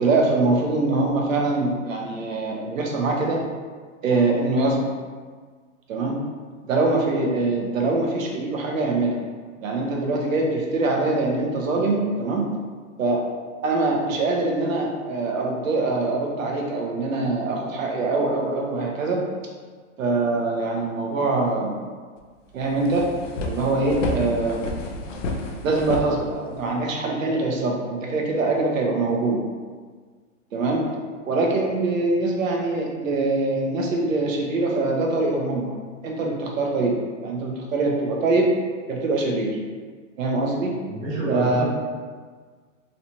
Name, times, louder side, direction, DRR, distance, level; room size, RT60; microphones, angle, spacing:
voice 1, 0.0-3.4 4.0-4.8 5.9-6.2 6.7-9.2 9.6-12.5 13.0-13.2 13.6-19.2 20.0-21.8 22.5-23.1 23.4-24.6 25.6-29.4 30.5-30.9 31.2-35.7 36.0-38.5 38.9-39.6 40.2-40.7 41.3-41.6, right 3 dB, 85° right, 0 dB, 0.9 m, -23 dB
sound 1, 22.2-22.3 22.6-26.8, left 2 dB, 70° left, 0.6 m, -31 dB
voice 2, 40.9-41.6, right 1 dB, 20° right, -8 dB, 0.4 m, -28 dB
3.2 x 2.8 x 2.8 m, 1.5 s
hypercardioid pair, 165°, 39 cm